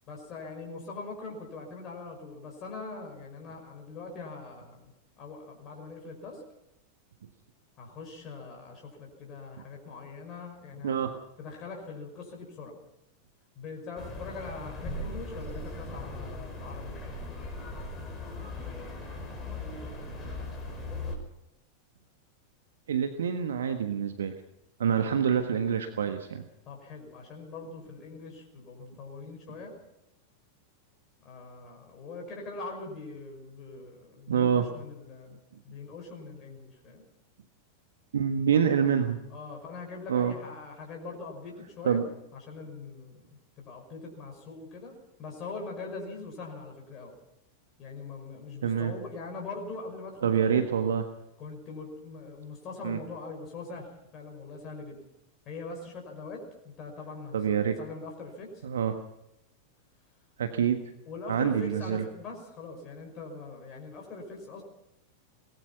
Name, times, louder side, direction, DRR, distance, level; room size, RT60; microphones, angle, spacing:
voice 1, 0.1-4.9 5.2-6.4 7.8-11.0 11.4-12.7 13.6-17.0 23.1-23.2 25.0-25.1 26.7-29.7 31.2-37.0 39.3-42.1 42.3-47.1 47.8-50.6 51.4-53.9 54.1-55.0 55.5-58.6 61.1-64.6, left 3 dB, 35° left, 1 dB, 5.6 m, -42 dB
sound 1, 14.0-21.2, left 2 dB, 15° left, 5.6 m, -38 dB
voice 2, 22.9-24.3 24.8-26.4 34.3-34.7 38.1-39.2 40.1-40.3 41.8-42.1 48.6-48.9 50.2-51.0 52.8-53.0 57.3-57.8 58.6-58.9 60.4-60.8 61.3-62.0, right 7 dB, 65° right, 7 dB, 1.4 m, -26 dB
22.0 x 20.0 x 5.8 m, 0.86 s
figure-of-eight pair, 90°, 0 cm